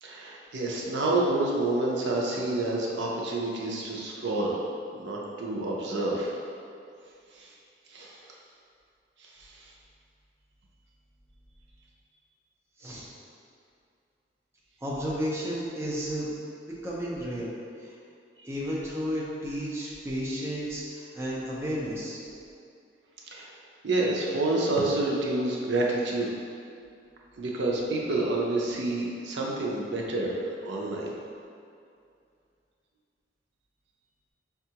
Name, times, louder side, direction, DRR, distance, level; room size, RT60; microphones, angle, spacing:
voice 1, 0.0-4.6 4.9-6.4 7.4-7.5 7.9-8.2 9.4-9.5 23.3-23.5 23.8-26.3 27.4-31.1, right 2 dB, 80° right, -3 dB, 0.5 m, -28 dB
voice 2, 14.8-16.3 16.8-17.5 17.8-17.9 18.4-22.2, equal, 15° right, -6 dB, 0.5 m, -32 dB
5.3 x 2.3 x 2.8 m, 2.4 s
head